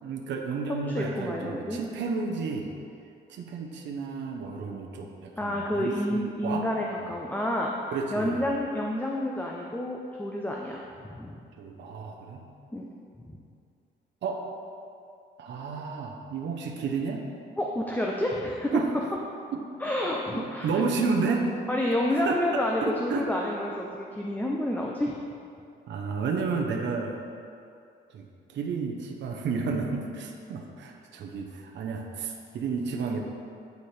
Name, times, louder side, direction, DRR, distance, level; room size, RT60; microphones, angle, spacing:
voice 1, 0.0-2.7 3.3-6.7 7.9-8.5 11.6-12.5 14.2-14.4 15.4-17.2 18.7-18.9 20.3-21.5 22.2-22.4 22.8-23.2 23.7-23.8 25.9-27.2 28.1-33.2, right 4 dB, 65° right, 1 dB, 0.7 m, -31 dB
voice 2, 0.9-1.8 5.4-11.4 12.7-12.8 13.2-13.4 17.6-18.8 19.8-20.8 21.7-25.2, left 1 dB, 10° left, -2 dB, 0.5 m, -29 dB
9.3 x 4.2 x 3.3 m, 2.5 s
cardioid pair, 90°, 20 cm